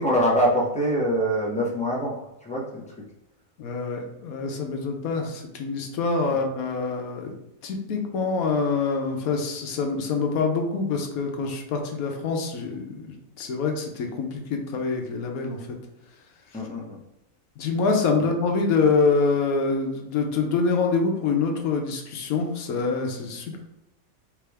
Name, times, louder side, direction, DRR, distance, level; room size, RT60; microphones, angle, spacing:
voice 1, 0.0-2.9 6.3-6.4 16.5-17.0 18.2-18.3, equal, 5° left, -4 dB, 0.9 m, -24 dB
voice 2, 3.6-7.3 7.6-15.6 17.6-23.6, left 4 dB, 85° left, 2 dB, 1.3 m, -25 dB
4.7 x 2.9 x 3.4 m, 0.91 s
omnidirectional pair, 1.5 m